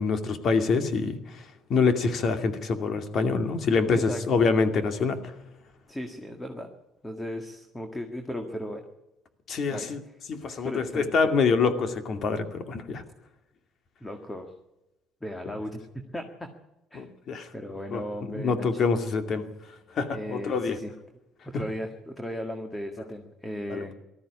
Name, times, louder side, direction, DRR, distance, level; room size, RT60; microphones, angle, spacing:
voice 1, 0.0-1.4 1.7-5.2 9.5-10.0 10.3-13.0 16.9-17.5 17.9-18.0 18.3-19.5 20.0-20.8 23.7-23.8, left 4 dB, 50° left, 8 dB, 2.4 m, -25 dB
voice 2, 5.9-6.7 7.0-8.8 9.7-10.1 10.6-11.3 14.0-14.5 15.2-15.8 16.1-16.5 16.9-17.1 17.5-18.8 20.1-20.9 21.5-23.9, equal, 10° left, 5 dB, 1.8 m, -36 dB
19.5 x 13.5 x 9.9 m, 0.99 s
cardioid pair, 125°, 0 cm